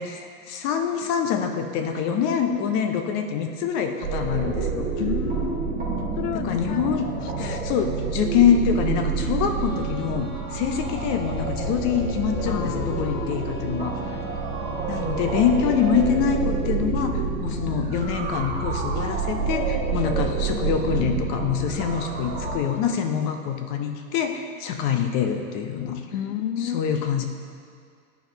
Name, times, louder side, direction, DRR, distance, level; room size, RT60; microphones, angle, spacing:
voice 1, 0.0-4.9 6.3-7.1 7.4-14.2 14.9-26.0 26.6-27.3, left 7 dB, 40° left, 5 dB, 0.8 m, -25 dB
sound 1, 4.0-22.6, right 4 dB, 20° right, 1.2 m, -28 dB
voice 2, 5.0-5.6 6.2-6.9 7.2-7.7 12.4-13.5 26.1-26.8, left 10 dB, 90° left, 12 dB, 0.5 m, -31 dB
sound 2, 9.6-16.7, right 5 dB, 20° left, 1.3 m, -40 dB
12.5 x 4.7 x 2.9 m, 2.2 s
hypercardioid pair, 110°, 45 cm